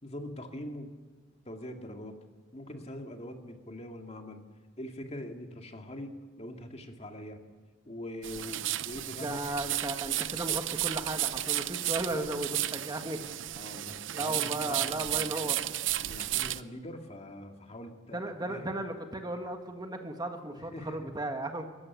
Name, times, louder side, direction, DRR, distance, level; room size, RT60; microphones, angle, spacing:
voice 1, 0.0-0.9 1.5-2.2 2.5-4.4 4.8-7.4 7.9-9.4 12.1-12.3 13.6-15.3 16.0-18.2 18.5-18.7 20.5-21.1, left 1 dB, 35° left, 4 dB, 2.2 m, -43 dB
sound 1, 8.2-16.6, right 14 dB, 75° right, 0.6 m, -33 dB
voice 2, 9.2-13.2 14.1-15.6 18.1-21.7, right 2 dB, 20° right, 6 dB, 1.5 m, -35 dB
22.5 x 14.0 x 9.6 m, 1.3 s
head